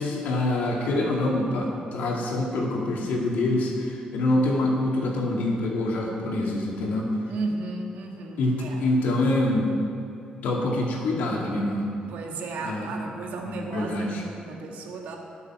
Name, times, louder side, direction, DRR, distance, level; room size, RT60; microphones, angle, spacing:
voice 1, 0.0-7.1 8.4-9.7 10.4-11.9 12.6-12.9 13.4-14.2, left 2 dB, 85° left, -2 dB, 2.4 m, -25 dB
voice 2, 7.3-8.8 12.1-15.2, right 3 dB, 85° right, 1 dB, 1.8 m, -34 dB
19.5 x 7.3 x 4.5 m, 2.7 s
cardioid pair, 135°, 3 cm